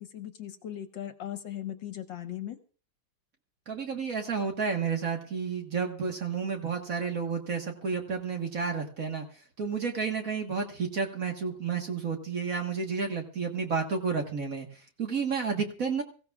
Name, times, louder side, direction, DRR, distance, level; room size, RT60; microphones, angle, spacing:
voice 1, 0.0-2.6, left 11 dB, 65° left, 8 dB, 1.6 m, -38 dB
voice 2, 3.7-9.3 9.6-16.0, right 5 dB, 45° right, 3 dB, 1.7 m, -31 dB
23.5 x 15.5 x 2.4 m, 0.40 s
omnidirectional pair, 2.3 m